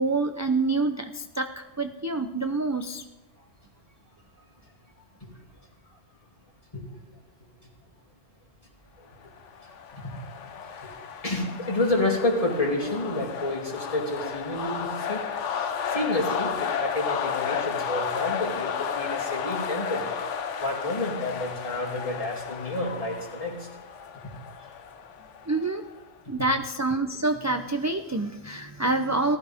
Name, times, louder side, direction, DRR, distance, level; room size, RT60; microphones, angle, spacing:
voice 1, 0.0-3.0 25.5-25.8 26.3-29.4, right 3 dB, 25° right, 5 dB, 0.4 m, -27 dB
sound 1, 9.4-26.0, left 7 dB, 80° left, 1.2 m, -33 dB
voice 2, 11.2-15.2 15.9-20.0 20.6-23.7, left 2 dB, 30° left, -2 dB, 3.0 m, -29 dB
19.0 x 14.0 x 3.6 m, 1.1 s
omnidirectional pair, 1.2 m